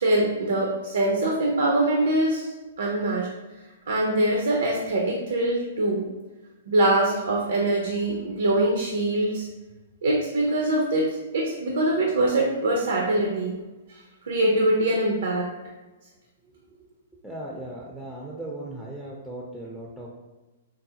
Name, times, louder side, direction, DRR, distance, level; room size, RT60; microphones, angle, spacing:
voice 1, 0.0-3.3 3.9-6.0 6.7-9.5 10.0-13.6 13.9-15.5, right 1 dB, 75° right, -1 dB, 0.6 m, -23 dB
voice 2, 16.4-16.8 17.2-20.1, right 1 dB, ahead, -4 dB, 0.5 m, -38 dB
3.8 x 2.0 x 2.7 m, 1.1 s
hypercardioid pair, 125°, 0 cm